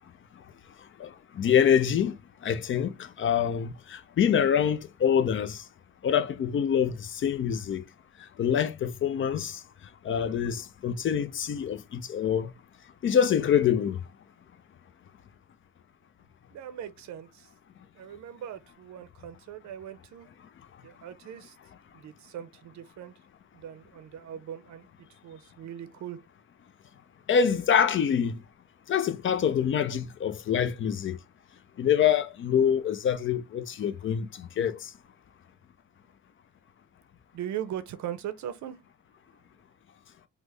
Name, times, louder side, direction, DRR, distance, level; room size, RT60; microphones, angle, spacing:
voice 1, 1.0-2.2 2.4-5.6 6.0-7.8 8.4-9.6 10.0-12.5 13.0-14.0 27.3-28.4 28.9-31.2 31.8-34.9, left 8 dB, 40° left, 0.4 m, -25 dB
voice 2, 16.5-17.5 17.9-20.3 20.8-21.6 21.9-23.1 23.5-24.9 25.2-26.2 37.3-38.8, right 10 dB, 70° right, 0.6 m, -40 dB
3.4 x 2.1 x 3.1 m
cardioid pair, 90°, 30 cm